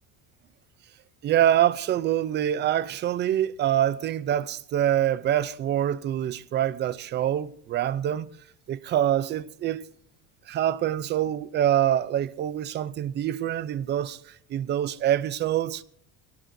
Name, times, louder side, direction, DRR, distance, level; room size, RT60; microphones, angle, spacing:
voice 1, 1.2-8.3 8.7-9.8 10.5-15.8, right 11 dB, 30° right, 0.4 m, -25 dB
22.0 x 17.5 x 2.6 m
cardioid pair, 170°, 35 cm